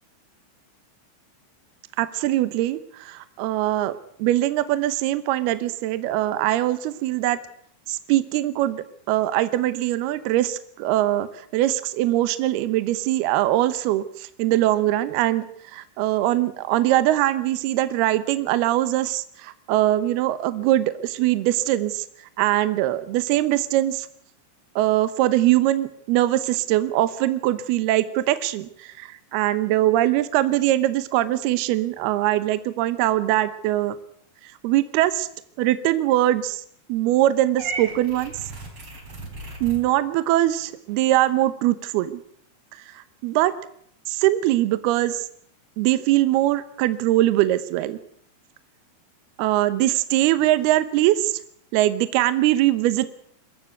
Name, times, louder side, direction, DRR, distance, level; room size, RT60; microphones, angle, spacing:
voice 1, 2.0-3.9 4.2-7.4 7.9-11.3 11.5-15.5 15.7-22.1 22.4-24.1 24.8-34.0 34.6-35.3 35.6-36.6 36.9-38.3 39.6-42.1 43.2-43.5 44.1-45.2 45.8-48.0 49.4-51.3 51.7-53.1, right 14 dB, 75° right, 13 dB, 2.7 m, -22 dB
Purr / Meow, 37.6-39.8, right 4 dB, 30° right, 4.9 m, -35 dB
23.0 x 14.5 x 8.2 m, 0.66 s
omnidirectional pair, 5.1 m